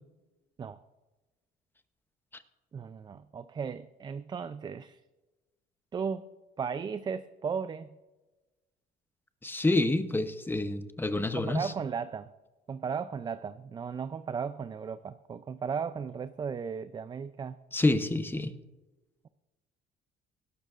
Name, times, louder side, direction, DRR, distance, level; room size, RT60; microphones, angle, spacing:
voice 1, 2.7-5.0 5.9-6.3 6.6-7.9 11.3-12.3 12.7-17.6, right 6 dB, 25° right, 12 dB, 0.4 m, -36 dB
voice 2, 9.4-11.7 17.7-18.5, left 2 dB, 10° left, 10 dB, 0.8 m, -28 dB
18.5 x 12.0 x 2.5 m, 1.2 s
cardioid pair, 110°, 17 cm